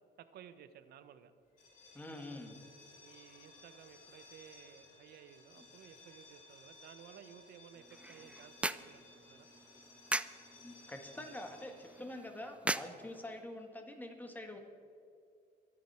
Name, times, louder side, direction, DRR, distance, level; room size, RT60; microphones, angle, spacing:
voice 1, 0.2-1.3 3.0-9.5, right 9 dB, 70° right, 11 dB, 1.1 m, -56 dB
sound 1, 1.5-13.2, left 3 dB, 50° left, 3.0 m, -59 dB
voice 2, 1.9-2.6 10.6-14.6, left 1 dB, 10° left, 3 dB, 2.1 m, -46 dB
sound 2, 7.7-13.7, right 2 dB, 5° right, 0.4 m, -42 dB
23.5 x 9.3 x 4.5 m, 2.5 s
cardioid pair, 110°, 17 cm